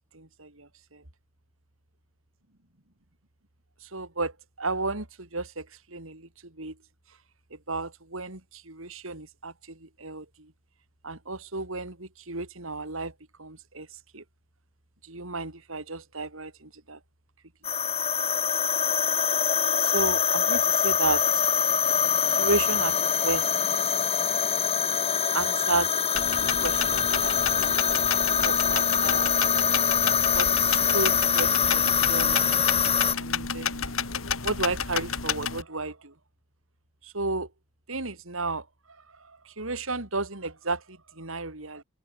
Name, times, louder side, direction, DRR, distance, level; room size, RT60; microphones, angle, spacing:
voice 1, 0.1-1.0 3.8-6.8 7.5-10.5 11.0-13.1 13.4-13.9 14.1-14.2 15.0-17.0 19.1-19.3 19.8-21.4 22.3-23.8 25.3-25.9 26.3-27.8 28.4-29.4 30.3-32.6 33.1-36.1 37.0-37.5 37.9-38.7 39.2-41.8, right 3 dB, 70° right, 3.7 m, -33 dB
sound 1, 17.6-33.2, left 7 dB, 30° left, 2.4 m, -24 dB
sound 2, 26.1-35.6, left 6 dB, 75° left, 2.4 m, -31 dB
head